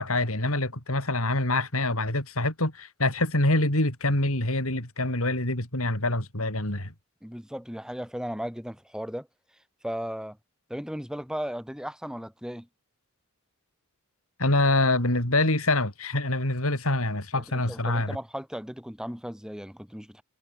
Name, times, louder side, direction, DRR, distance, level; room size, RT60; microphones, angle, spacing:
voice 1, 0.0-6.9 14.4-18.2, left 2 dB, 70° left, 5.7 m, -25 dB
voice 2, 7.2-9.3 9.8-10.4 10.7-12.7 17.3-20.2, equal, 5° right, 6.8 m, -36 dB
head